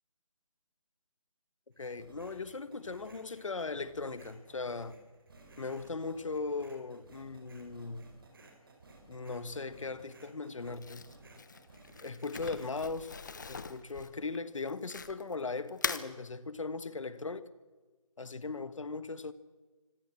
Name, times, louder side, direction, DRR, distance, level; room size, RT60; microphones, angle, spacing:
sound 1, 1.7-12.8, right 2 dB, 40° right, 4.5 m, -57 dB
voice 1, 1.8-5.0 5.6-8.1 9.1-11.0 12.0-13.2 13.5-17.5 18.2-19.3, left 4 dB, 60° left, 1.4 m, -38 dB
Crumpling crinkling, 10.7-15.3 15.7-16.1, left 5 dB, 35° left, 1.0 m, -40 dB
25.5 x 16.0 x 7.5 m
figure-of-eight pair, 170°, 18 cm